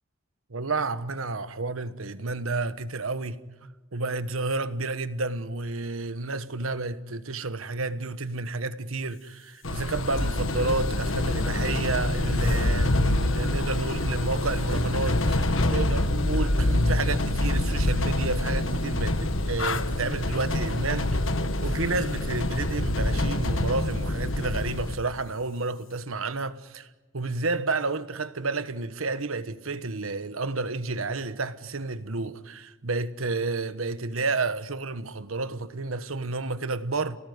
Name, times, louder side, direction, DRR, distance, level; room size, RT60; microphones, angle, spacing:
voice 1, 0.5-21.3 21.6-26.9 27.1-37.2, right 3 dB, 90° right, 1.3 m, -31 dB
sound 1, 9.6-24.9, left 1 dB, 70° left, 1.5 m, -26 dB
29.5 x 18.5 x 9.6 m
head